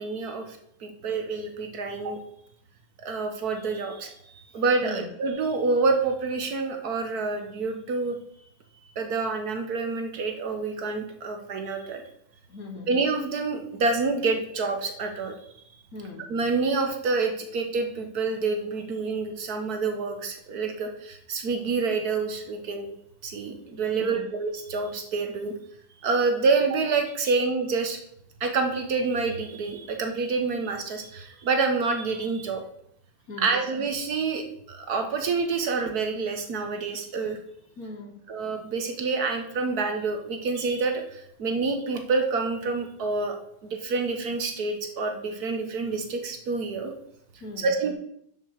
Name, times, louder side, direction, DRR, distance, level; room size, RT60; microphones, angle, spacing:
voice 1, 0.0-2.2 3.0-4.1 4.5-8.2 8.9-12.0 12.9-15.3 16.3-22.9 23.2-25.5 26.0-28.0 28.4-32.6 33.4-37.4 38.3-46.9 47.6-47.9, right 4 dB, 50° right, 4 dB, 1.5 m, -27 dB
voice 2, 12.5-12.9 15.9-16.3 23.9-24.3 27.2-27.4 33.3-33.6 37.8-38.1 47.4-47.7, left 3 dB, 45° left, 3 dB, 1.6 m, -39 dB
7.3 x 6.8 x 6.5 m, 0.72 s
omnidirectional pair, 2.4 m